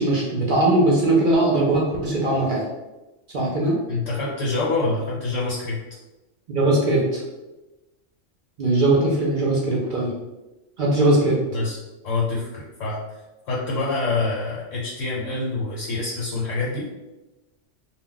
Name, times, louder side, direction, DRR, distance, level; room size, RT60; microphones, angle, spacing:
voice 1, 0.0-2.6 3.3-3.8 6.5-7.2 8.6-10.1 10.8-11.4, right 2 dB, 60° right, -3 dB, 0.6 m, -20 dB
voice 2, 3.9-5.8 11.5-11.8 12.0-13.0 13.5-16.8, left 3 dB, 85° left, -6 dB, 1.1 m, -26 dB
2.3 x 2.1 x 3.7 m, 1.1 s
omnidirectional pair, 1.3 m